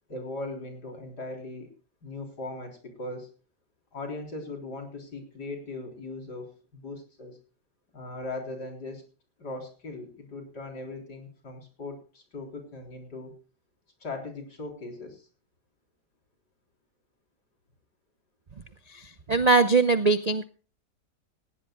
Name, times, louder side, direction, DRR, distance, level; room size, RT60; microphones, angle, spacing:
voice 1, 0.1-1.7 2.0-3.3 3.9-7.4 7.9-9.0 9.4-13.4 14.0-15.3, left 2 dB, 70° left, 3 dB, 4.5 m, -39 dB
voice 2, 19.3-20.4, right 4 dB, 50° right, 11 dB, 0.4 m, -20 dB
18.5 x 16.0 x 2.3 m, 0.36 s
omnidirectional pair, 1.8 m